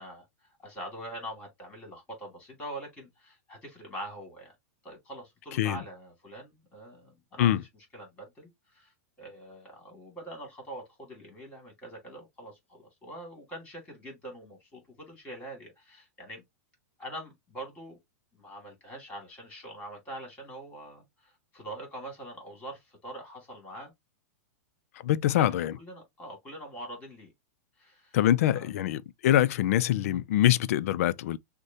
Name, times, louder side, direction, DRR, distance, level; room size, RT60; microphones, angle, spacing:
voice 1, 0.0-4.5 4.8-16.4 17.0-18.0 18.3-23.9 25.2-27.3 27.8-28.2 28.5-28.8, right 1 dB, 15° left, 2.3 m, -44 dB
voice 2, 25.0-25.7 28.1-31.4, left 12 dB, 60° left, 0.4 m, -24 dB
6.3 x 2.1 x 2.7 m
supercardioid pair, 160°, 9 cm